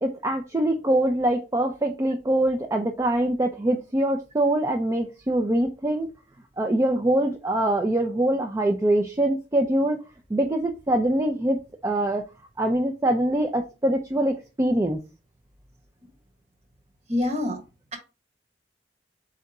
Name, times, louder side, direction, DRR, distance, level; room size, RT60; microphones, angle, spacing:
voice 1, 0.0-6.1 6.6-10.0 10.3-12.2 12.6-15.0, right 1 dB, 15° right, 0.4 m, -24 dB
voice 2, 17.1-17.6, left 1 dB, 35° right, 1.1 m, -25 dB
4.2 x 3.7 x 3.4 m
head